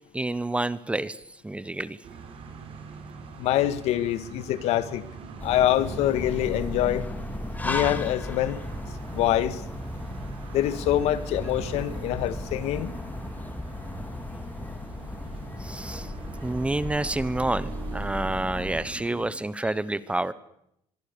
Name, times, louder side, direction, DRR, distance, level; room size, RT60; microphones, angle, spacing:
voice 1, 0.1-1.2 1.4-2.0 15.6-16.1 16.4-20.3, right 2 dB, 10° right, 1.0 m, -28 dB
sound 1, 2.0-19.3, right 5 dB, 55° right, 4.9 m, -42 dB
voice 2, 3.4-5.0 5.4-7.0 7.6-8.6 9.1-9.6 10.5-12.9, left 12 dB, 75° left, 1.7 m, -25 dB
sound 2, 5.4-18.8, left 1 dB, 15° left, 2.3 m, -35 dB
24.5 x 22.0 x 6.9 m
cardioid pair, 110°, 11 cm